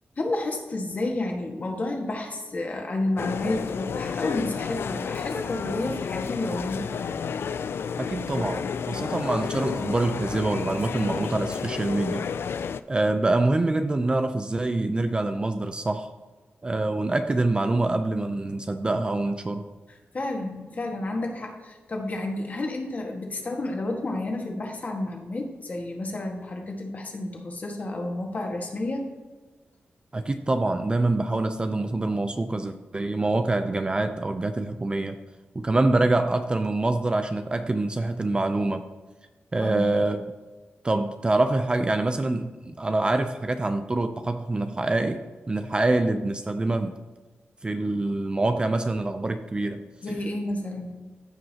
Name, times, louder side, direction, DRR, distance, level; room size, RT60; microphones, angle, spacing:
voice 1, 0.2-6.9 20.1-29.1 39.6-39.9 50.0-50.9, left 2 dB, 40° left, 1 dB, 1.6 m, -30 dB
sound 1, 3.2-12.8, left 6 dB, 70° left, 0.3 m, -31 dB
voice 2, 8.0-12.3 12.9-16.1 16.6-19.7 30.1-35.2 35.6-38.8 39.5-40.2 40.8-46.9 47.6-49.9, right 2 dB, 25° right, 8 dB, 0.5 m, -25 dB
15.0 x 5.4 x 2.9 m, 1.3 s
wide cardioid pair, 145°, 4 cm